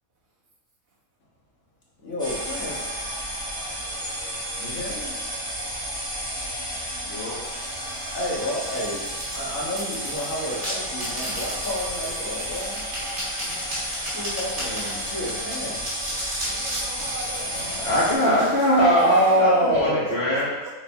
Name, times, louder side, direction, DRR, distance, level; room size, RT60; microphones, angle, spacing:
voice 1, 2.0-2.8 4.6-5.2 8.1-9.0 9.3-12.8 14.1-15.8 18.9-20.3, equal, 70° left, -5 dB, 2.0 m, -27 dB
sound 1, 2.2-18.1, equal, 5° left, 1.7 m, -32 dB
voice 2, 7.1-7.4 13.4-14.2 17.8-20.6, equal, 50° left, -8 dB, 1.4 m, -23 dB
sound 2, 7.4-19.3, equal, 75° right, 2.9 m, -36 dB
voice 3, 16.5-17.9 19.8-20.7, right 1 dB, 50° right, -6 dB, 1.9 m, -40 dB
6.2 x 4.0 x 4.4 m, 1.1 s
omnidirectional pair, 1.5 m